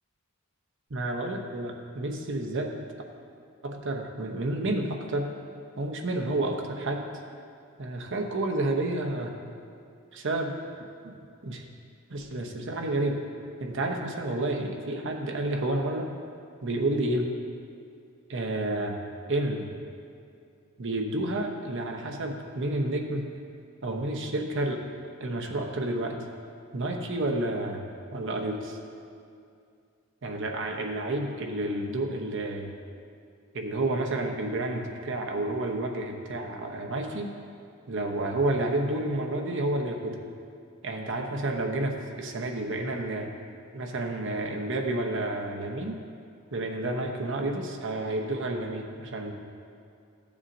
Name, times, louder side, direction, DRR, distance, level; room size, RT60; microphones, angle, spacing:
voice 1, 0.9-2.9 3.6-5.3 5.8-7.1 7.8-9.4 10.1-10.6 11.0-11.1 11.4-11.6 12.1-13.2 13.6-16.1 16.6-17.3 18.3-19.0 19.3-19.7 20.8-23.3 23.8-24.8 25.2-26.2 26.7-27.8 28.1-28.8 30.2-32.7 33.5-37.3 37.9-40.2 40.8-43.3 43.7-46.0 46.5-49.3, right 2 dB, 60° right, 2 dB, 0.9 m, -30 dB
13.5 x 7.1 x 2.6 m, 2.4 s
head